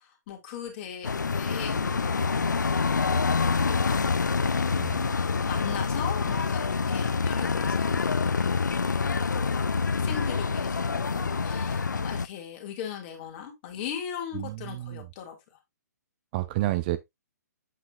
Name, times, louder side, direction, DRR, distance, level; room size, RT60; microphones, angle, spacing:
voice 1, 0.0-4.1 4.4-8.2 9.3-9.6 10.0-15.4, left 8 dB, 35° left, 2.3 m, -39 dB
sound 1, 1.0-12.3, left 5 dB, 85° left, 0.4 m, -26 dB
voice 2, 4.8-5.1 14.3-15.1 16.3-17.0, right 16 dB, 30° right, 0.5 m, -30 dB
sound 2, 4.9-11.3, left 5 dB, 65° left, 1.8 m, -47 dB
7.7 x 5.7 x 2.4 m
figure-of-eight pair, 130°, 10 cm